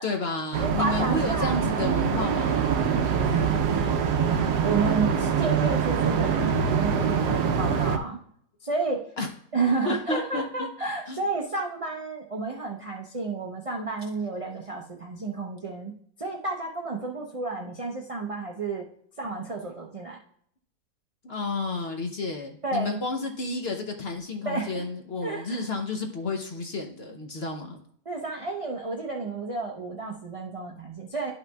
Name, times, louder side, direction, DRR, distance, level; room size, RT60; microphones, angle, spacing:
voice 1, 0.0-3.1 9.2-9.3 9.8-10.7 11.1-11.2 21.2-27.8, left 3 dB, 50° left, 3 dB, 0.8 m, -31 dB
sound 1, 0.5-8.0, right 7 dB, 85° right, 1.3 m, -24 dB
voice 2, 0.6-1.7 2.8-8.2 8.6-9.0 9.5-15.9 16.2-18.9 19.2-20.2 22.6-23.0 24.4-24.8 25.2-25.6 28.1-31.3, right 3 dB, 55° right, 0 dB, 0.3 m, -31 dB
11.5 x 5.7 x 2.3 m, 0.65 s
omnidirectional pair, 1.7 m